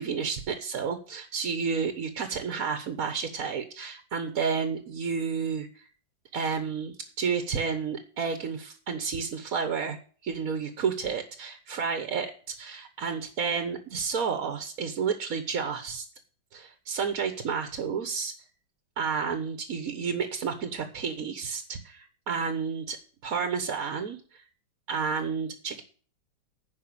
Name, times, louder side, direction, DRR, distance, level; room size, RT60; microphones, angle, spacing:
voice 1, 0.0-5.9 6.3-10.0 10.2-16.0 16.5-18.3 19.0-23.0 23.2-24.4 24.9-25.8, right 6 dB, 50° right, 8 dB, 1.4 m, -31 dB
10.5 x 5.5 x 8.5 m, 0.40 s
omnidirectional pair, 2.1 m